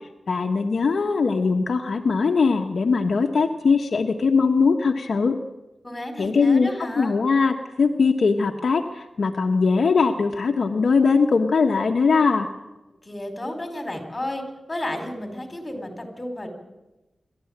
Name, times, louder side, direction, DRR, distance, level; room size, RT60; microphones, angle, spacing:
voice 1, 0.3-5.4 6.2-12.5, left 4 dB, 65° left, 3 dB, 1.3 m, -21 dB
voice 2, 5.8-7.2 13.0-14.4 14.7-16.5, left 1 dB, 20° left, 6 dB, 4.5 m, -32 dB
27.5 x 12.5 x 8.7 m, 1.0 s
wide cardioid pair, 110°, 0 cm